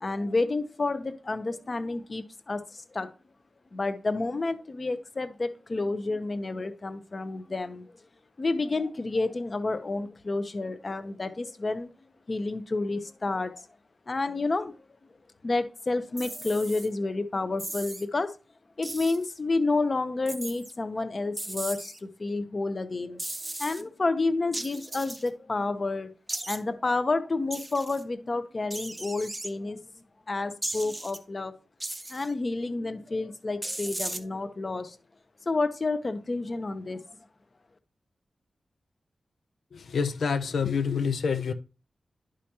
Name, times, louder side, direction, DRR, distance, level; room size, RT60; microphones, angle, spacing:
voice 1, 0.0-3.1 3.7-7.9 8.4-11.9 12.3-13.7 14.1-14.8 15.4-18.3 18.8-23.2 23.6-26.1 26.5-29.8 30.3-31.5 32.1-35.0 35.5-37.0, left 3 dB, 35° left, 0.7 m, -30 dB
sound 1, 16.2-16.9 17.6-18.0 18.8-19.2 20.3-20.7 21.4-22.0 23.2-23.8 24.5-25.3 26.3-26.6 27.5-28.0 28.7-29.5 30.6-31.2 31.8-32.3 33.6-34.2, right 1 dB, 15° right, 0.6 m, -36 dB
voice 2, 39.7-41.5, left 6 dB, 85° left, 0.6 m, -27 dB
11.5 x 5.0 x 2.9 m
wide cardioid pair, 140°, 0 cm